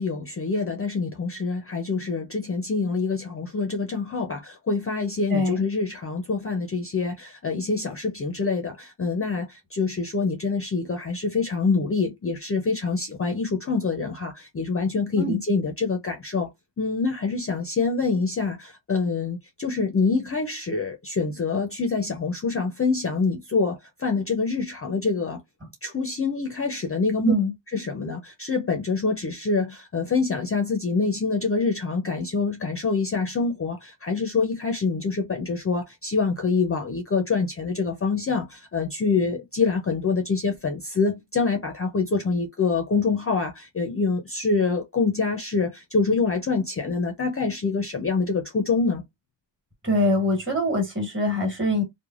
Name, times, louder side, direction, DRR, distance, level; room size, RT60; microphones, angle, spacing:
voice 1, 0.0-16.5 16.8-25.4 25.8-27.3 27.7-49.0, left 4 dB, 30° left, 0.4 m, -26 dB
voice 2, 49.8-51.8, left 1 dB, 25° right, 1.3 m, -23 dB
3.2 x 2.1 x 2.3 m
wide cardioid pair, 120°, 46 cm